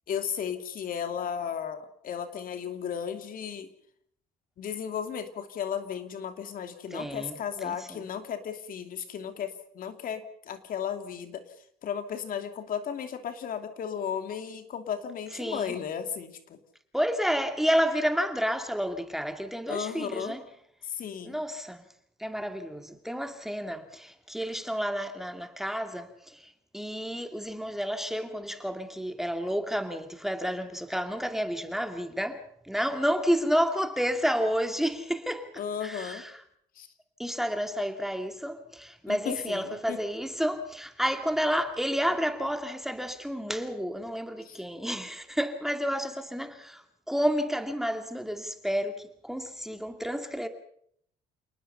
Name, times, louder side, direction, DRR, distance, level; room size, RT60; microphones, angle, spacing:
voice 1, 0.1-3.7 4.6-11.4 11.8-16.6 19.7-20.4 20.9-21.4 35.6-36.2 36.8-36.9 39.1-40.0 44.4-44.6, left 8 dB, 55° left, 2.8 m, -35 dB
voice 2, 6.9-8.0 15.3-15.8 16.9-20.4 21.2-21.8 22.2-36.4 37.2-50.5, equal, ahead, 2.3 m, -30 dB
28.5 x 19.0 x 5.6 m
cardioid pair, 110°, 17 cm